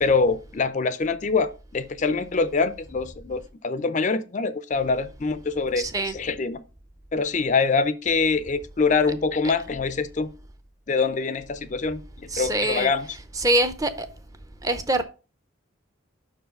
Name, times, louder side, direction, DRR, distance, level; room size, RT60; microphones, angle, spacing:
voice 1, 0.0-6.6 7.1-10.3 10.9-12.0 12.4-13.1, left 4 dB, 35° left, 0.4 m, -24 dB
voice 2, 5.8-6.2 12.3-12.9 13.4-14.1 14.6-15.0, right 1 dB, 15° right, 0.5 m, -24 dB
6.1 x 4.7 x 5.1 m
head